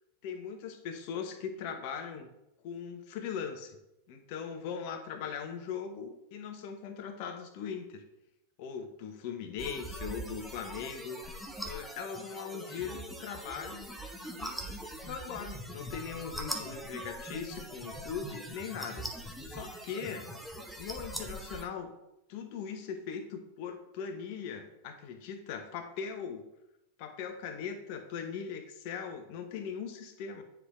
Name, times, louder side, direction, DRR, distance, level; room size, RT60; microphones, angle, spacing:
voice 1, 0.2-2.3 2.6-3.8 4.1-8.0 8.6-11.4 11.6-13.9 14.4-14.6 15.0-19.1 19.4-20.3 20.8-21.9 22.3-26.4 27.0-30.4, left 7 dB, 45° left, 7 dB, 0.9 m, -40 dB
sound 1, 9.6-21.7, right 1 dB, ahead, 0.8 m, -42 dB
9.6 x 4.5 x 2.5 m, 0.87 s
figure-of-eight pair, 90°, 0 cm